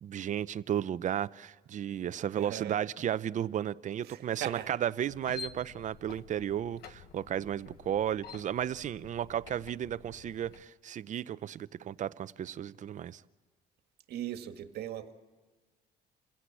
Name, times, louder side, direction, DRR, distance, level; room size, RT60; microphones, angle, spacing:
voice 1, 0.0-13.2, right 10 dB, 45° right, 0.6 m, -34 dB
voice 2, 2.3-2.8 4.0-4.7 14.1-15.1, right 11 dB, 70° right, 1.8 m, -39 dB
sound 1, 5.1-10.6, left 7 dB, 70° left, 1.0 m, -49 dB
28.0 x 16.5 x 8.4 m
cardioid pair, 110°, 17 cm